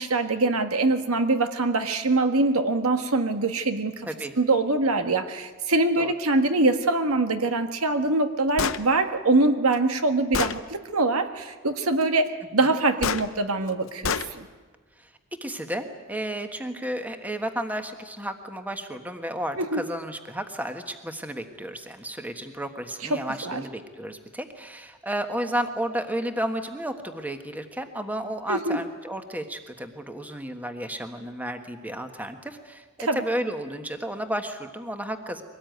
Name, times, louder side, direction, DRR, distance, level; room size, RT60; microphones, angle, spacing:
voice 1, 0.0-4.1 4.4-14.5 19.6-19.8 23.1-23.6 28.5-28.8 33.0-33.2, right 2 dB, 75° right, 7 dB, 1.5 m, -24 dB
Gunshot gunfire, 8.6-8.8 9.7-9.8 10.3-10.6 13.0-13.2 14.0-14.3, left 6 dB, 65° left, 0.8 m, -26 dB
voice 2, 15.0-35.4, right 1 dB, 5° right, 6 dB, 1.4 m, -32 dB
23.5 x 18.5 x 9.4 m, 1.4 s
head